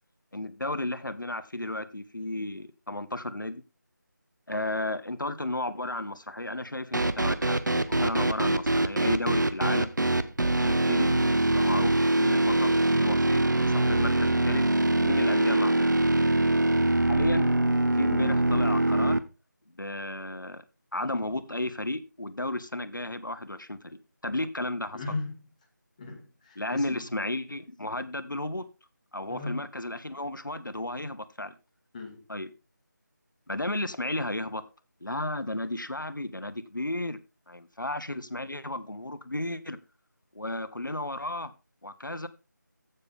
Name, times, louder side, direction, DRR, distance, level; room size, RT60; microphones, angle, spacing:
voice 1, 0.3-3.6 4.5-7.6 7.9-9.9 10.6-11.1 11.4-14.6 15.0-16.0 17.0-17.5 17.9-19.2 19.7-20.6 20.9-25.0 26.6-28.6 29.1-31.5 32.3-32.5 33.5-34.6 35.0-37.2 37.5-39.8 40.3-41.5 41.8-42.3, left 1 dB, 85° left, 1.3 m, -33 dB
sound 1, 6.9-19.2, right 2 dB, 70° right, 1.1 m, -23 dB
voice 2, 24.9-25.4 26.0-27.0 29.3-29.6 31.9-32.2, left 3 dB, 20° left, 2.2 m, -37 dB
15.0 x 7.0 x 3.7 m
figure-of-eight pair, 165°, 10 cm